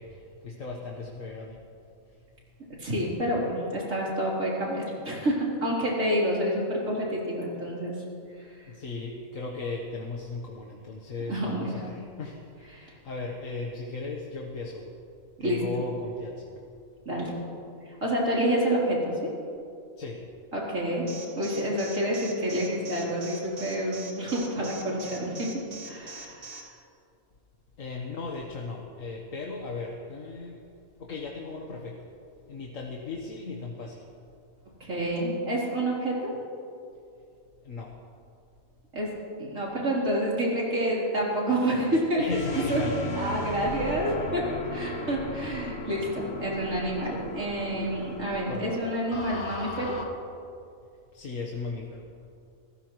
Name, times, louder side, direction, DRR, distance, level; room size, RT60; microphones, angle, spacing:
voice 1, 0.0-1.6 8.7-14.8 15.4-16.5 20.0-20.2 27.8-30.6 31.0-32.0 32.5-34.0 37.6-37.9 42.2-42.9 48.5-48.7 51.1-52.0, left 3 dB, 70° left, -1 dB, 1.7 m, -36 dB
voice 2, 2.8-7.9 11.3-11.7 12.7-12.9 15.4-15.6 17.1-17.3 17.9-19.3 20.5-21.1 21.4-25.5 25.8-26.6 34.8-36.3 38.9-39.1 39.4-42.2 42.5-42.8 43.1-50.0, right 1 dB, 65° right, -5 dB, 4.4 m, -28 dB
Alarm, 21.1-26.6, right 4 dB, 40° right, 2.0 m, -42 dB
sound 1, 42.3-50.0, left 2 dB, 50° left, 1.7 m, -36 dB
29.5 x 15.0 x 3.2 m, 2.5 s
omnidirectional pair, 1.4 m